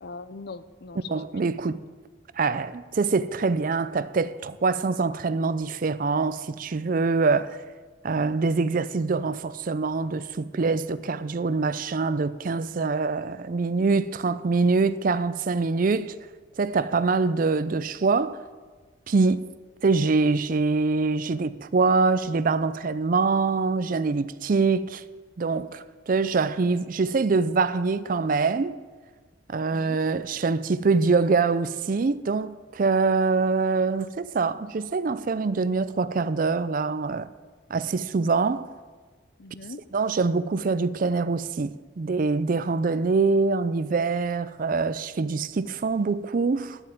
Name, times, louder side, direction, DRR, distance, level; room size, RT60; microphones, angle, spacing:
voice 1, 0.0-1.4 29.7-30.0 39.4-39.8, left 3 dB, 55° left, 0.6 m, -41 dB
voice 2, 1.1-1.8 2.4-7.6 8.0-16.2 16.6-18.4 19.1-19.5 19.8-25.0 25.4-28.8 29.5-37.3 37.7-38.7 39.9-46.8, right 4 dB, 45° right, 0.4 m, -24 dB
11.0 x 7.6 x 9.1 m
head